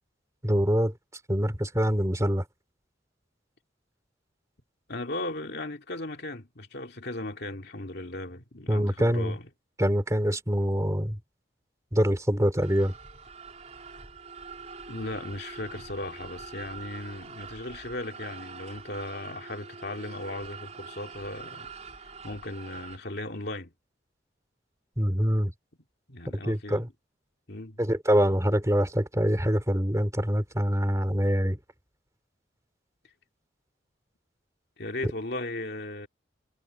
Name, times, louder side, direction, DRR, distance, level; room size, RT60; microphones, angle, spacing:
voice 1, 0.4-0.9 1.3-2.4 8.7-9.3 9.8-11.2 11.9-12.9 25.0-25.5 26.4-26.9 27.8-31.6, equal, 15° right, 3.0 m, -25 dB
voice 2, 4.9-9.5 14.9-21.7 22.2-23.7 26.1-26.9 27.5-27.8 34.8-36.1, left 2 dB, 60° left, 2.6 m, -37 dB
sound 1, 12.6-23.0, right 5 dB, 40° right, 4.2 m, -44 dB
head